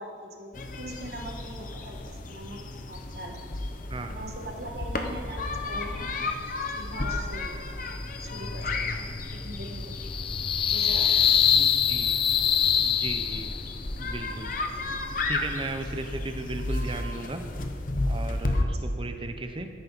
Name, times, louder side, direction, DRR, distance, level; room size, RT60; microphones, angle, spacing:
voice 1, 0.0-2.6 2.9-3.6 4.1-6.3 6.7-7.6 8.2-9.9 10.7-11.5 18.7-18.9, right 1 dB, 60° right, 2 dB, 1.5 m, -41 dB
sound 1, 0.5-18.6, left 2 dB, 45° left, 0.8 m, -33 dB
sound 2, 7.9-13.8, left 8 dB, 30° left, 0.4 m, -25 dB
voice 2, 11.5-12.1 12.8-13.5 14.0-14.5 14.8-14.9 15.2-17.4 18.1-19.7, right 2 dB, 30° right, 7 dB, 0.7 m, -36 dB
13.0 x 10.5 x 4.1 m, 2.4 s
head